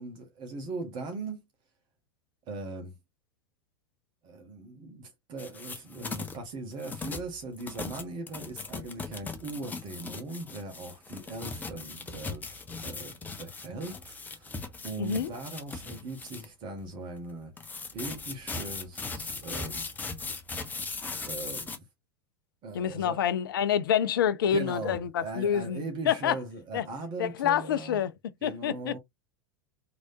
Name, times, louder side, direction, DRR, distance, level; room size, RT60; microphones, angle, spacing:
voice 1, 0.0-1.5 2.5-2.9 4.2-19.8 21.2-21.8 22.6-23.2 24.5-28.0 28.4-29.0, right 3 dB, 35° right, 1.6 m, -40 dB
sound 1, 5.4-6.4 6.8-16.5 17.6-21.8, left 4 dB, 15° left, 0.9 m, -39 dB
voice 2, 15.0-15.3 22.7-26.4 26.7-26.9 27.2-28.1 28.4-29.0, left 9 dB, 60° left, 0.5 m, -27 dB
3.8 x 3.3 x 2.7 m
figure-of-eight pair, 90°, 13 cm